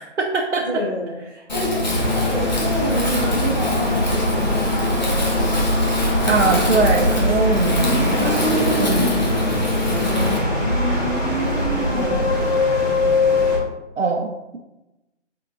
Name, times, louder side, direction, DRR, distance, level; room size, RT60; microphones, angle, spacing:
voice 1, 0.0-0.6 6.2-9.2 14.0-14.6, right 4 dB, 70° right, -1 dB, 0.7 m, -22 dB
voice 2, 0.6-5.6 6.2-6.8 7.5-7.7 9.7-10.7 11.6-13.6, equal, 15° right, -12 dB, 0.7 m, -29 dB
Wind, 1.5-10.4, left 3 dB, 35° left, 0.9 m, -24 dB
sound 1, 1.9-13.6, left 1 dB, ahead, 1.0 m, -22 dB
3.8 x 3.6 x 3.6 m, 0.97 s
figure-of-eight pair, 165°, 36 cm